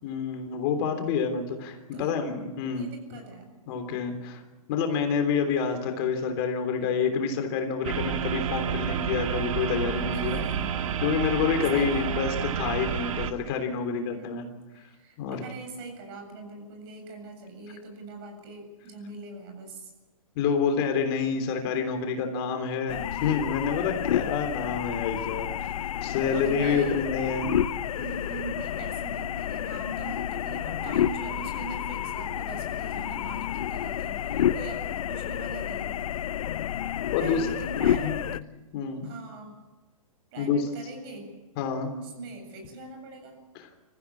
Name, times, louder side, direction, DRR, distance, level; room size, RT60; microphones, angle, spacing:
voice 1, 0.0-3.2 3.7-4.4 4.7-10.4 11.0-14.4 15.2-15.4 20.4-27.5 37.1-37.5 38.0-38.2 38.7-39.1 40.4-40.7 41.6-41.9 43.6-43.7, left 6 dB, 40° left, 5 dB, 3.4 m, -28 dB
voice 2, 2.7-3.5 10.1-11.0 11.7-12.2 13.8-14.4 14.7-19.9 26.2-26.9 28.0-35.9 37.2-38.2 39.0-39.6 40.3-41.3 42.0-43.4, right 3 dB, 45° right, 4 dB, 7.8 m, -42 dB
sound 1, 7.8-13.3, right 8 dB, 65° right, 1.9 m, -29 dB
sound 2, 22.9-38.4, left 10 dB, 70° left, 0.8 m, -30 dB
26.0 x 15.0 x 8.6 m, 1.2 s
hypercardioid pair, 145°, 18 cm